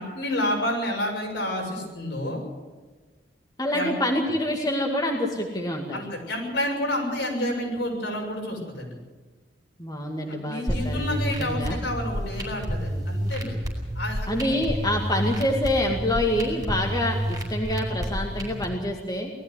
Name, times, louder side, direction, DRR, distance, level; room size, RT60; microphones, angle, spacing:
voice 1, 0.0-2.4 3.7-3.9 5.9-8.9 10.2-13.5 13.9-14.5, left 1 dB, 70° left, -1 dB, 6.7 m, -29 dB
voice 2, 3.6-6.0 9.8-11.8 14.3-19.3, left 1 dB, 20° left, 0 dB, 2.2 m, -26 dB
sound 1, 10.7-18.7, equal, 20° right, 5.3 m, -30 dB
20.0 x 14.0 x 9.7 m, 1.3 s
head